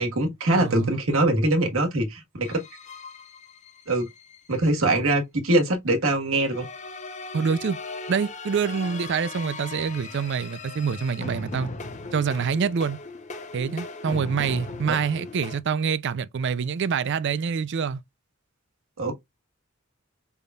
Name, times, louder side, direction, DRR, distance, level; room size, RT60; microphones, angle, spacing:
voice 1, 0.0-2.6 3.9-4.1 4.5-6.6 14.9-15.0 19.0-19.1, right 2 dB, 80° right, 1.5 m, -23 dB
voice 2, 0.5-0.9 7.3-7.8 8.1-11.7 12.1-13.0 13.5-18.0, right 6 dB, 60° right, 0.4 m, -26 dB
sound 1, 2.4-4.7 6.4-15.6, left 3 dB, 35° left, 0.7 m, -38 dB
5.4 x 3.5 x 2.3 m
head